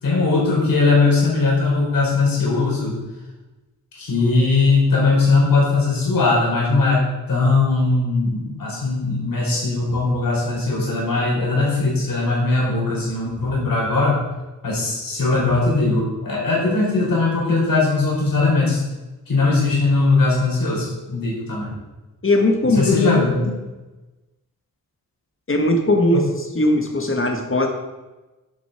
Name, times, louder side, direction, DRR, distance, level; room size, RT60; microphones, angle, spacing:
voice 1, 0.0-3.0 3.9-14.2 14.6-18.8 19.3-21.7 22.6-23.6, left 3 dB, 80° left, -3 dB, 4.5 m, -19 dB
voice 2, 22.2-23.0 25.5-26.3 26.6-27.7, left 1 dB, 40° left, 4 dB, 1.9 m, -18 dB
10.5 x 8.1 x 5.1 m, 1.1 s
wide cardioid pair, 80°, 33 cm